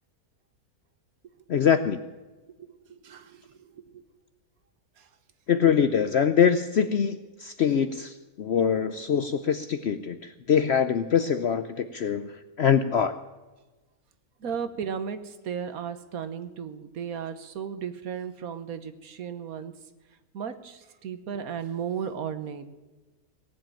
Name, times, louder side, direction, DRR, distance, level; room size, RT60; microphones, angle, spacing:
voice 1, 1.5-2.0 5.5-13.2, left 7 dB, 60° left, 10 dB, 0.7 m, -24 dB
voice 2, 2.6-4.0 5.0-5.1 14.4-19.7 20.3-22.7, right 7 dB, 70° right, 10 dB, 1.4 m, -35 dB
18.0 x 7.6 x 9.0 m, 1.2 s
omnidirectional pair, 1.6 m